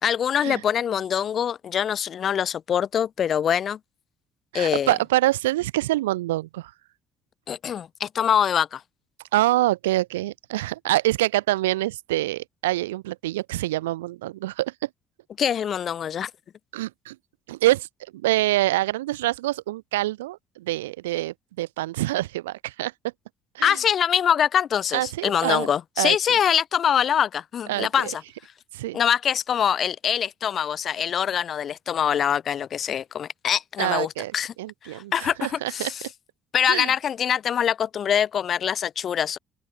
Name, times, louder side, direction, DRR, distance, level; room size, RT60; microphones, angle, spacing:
voice 1, 0.0-3.8 4.5-4.9 7.5-8.8 15.4-16.3 23.6-28.2 28.9-34.5 34.8-36.0 36.5-39.4, left 8 dB, 45° left, 0.8 m, -24 dB
voice 2, 4.5-6.7 9.3-14.9 16.7-17.2 17.5-17.9 18.1-22.9 23.5-23.8 24.9-25.7 26.0-26.4 27.7-28.1 28.7-29.0 33.8-34.3 34.6-35.9 36.7-36.9, right 16 dB, 70° right, 0.4 m, -25 dB
open air
figure-of-eight pair, 50°, 0 cm